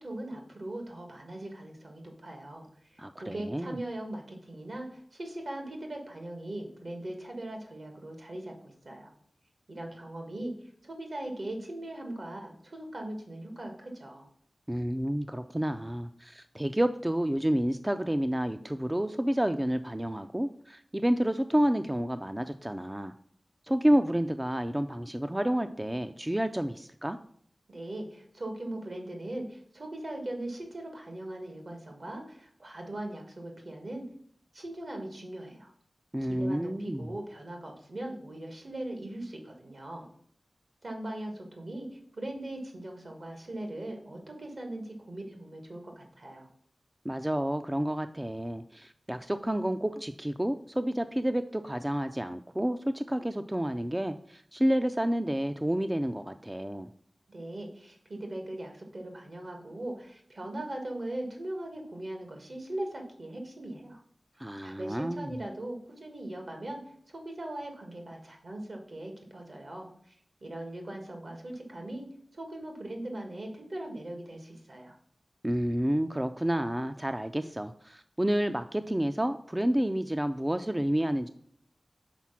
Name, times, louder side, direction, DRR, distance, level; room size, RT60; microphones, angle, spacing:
voice 1, 0.0-9.1 9.7-14.3 27.7-34.0 34.5-35.7 36.3-40.1 40.8-46.5 57.3-64.0 64.6-72.0 72.3-75.0, right 1 dB, 65° right, 3 dB, 1.6 m, -40 dB
voice 2, 3.0-3.8 14.7-23.1 23.7-27.2 36.1-37.0 47.0-56.9 64.4-65.3 75.4-81.3, right 1 dB, 15° right, 9 dB, 0.3 m, -29 dB
6.0 x 4.1 x 5.7 m, 0.63 s
wide cardioid pair, 65°, 0 cm